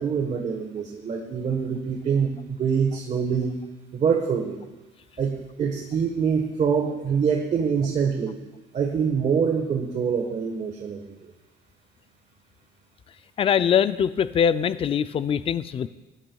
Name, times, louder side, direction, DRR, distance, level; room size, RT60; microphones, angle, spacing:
voice 1, 0.0-3.5 3.9-4.6 5.2-8.4 8.7-11.3, right 6 dB, 45° right, 3 dB, 1.3 m, -25 dB
voice 2, 13.4-15.9, left 8 dB, 35° left, 13 dB, 0.4 m, -22 dB
16.0 x 11.0 x 2.3 m, 1.1 s
cardioid pair, 110°, 17 cm